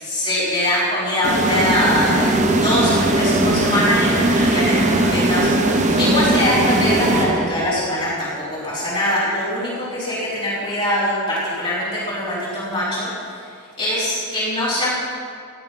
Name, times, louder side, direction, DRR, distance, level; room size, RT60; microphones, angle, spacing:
voice 1, 0.0-13.4 13.8-15.0, left 1 dB, 25° left, -11 dB, 4.4 m, -22 dB
sound 1, 1.2-7.9, right 2 dB, 30° right, 1.2 m, -19 dB
17.5 x 11.5 x 5.7 m, 2.3 s
head